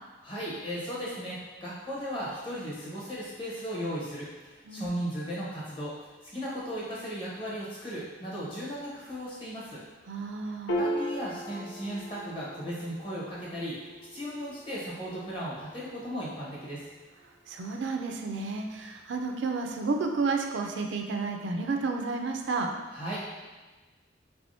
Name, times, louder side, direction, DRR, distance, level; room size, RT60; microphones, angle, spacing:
voice 1, 0.2-5.9 6.3-9.8 10.8-16.9 22.9-23.2, equal, 25° left, -7 dB, 0.9 m, -36 dB
voice 2, 10.1-10.8 17.5-22.7, right 4 dB, 75° right, 3 dB, 0.4 m, -31 dB
Piano, 10.7-17.3, equal, 80° left, 0.4 m, -38 dB
3.4 x 3.4 x 2.6 m, 1.2 s
head